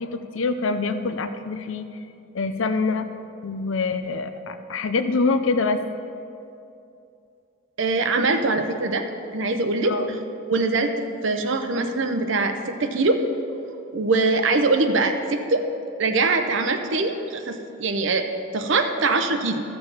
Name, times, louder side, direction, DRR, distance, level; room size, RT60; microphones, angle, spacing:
voice 1, 0.0-1.9 2.3-3.1 3.4-5.8 9.8-10.2, left 3 dB, 75° left, 10 dB, 0.6 m, -25 dB
voice 2, 7.8-9.0 9.3-10.2 10.5-13.2 13.9-15.7 16.0-19.6, right 3 dB, 65° right, 6 dB, 0.7 m, -23 dB
13.5 x 6.9 x 5.6 m, 2.6 s
head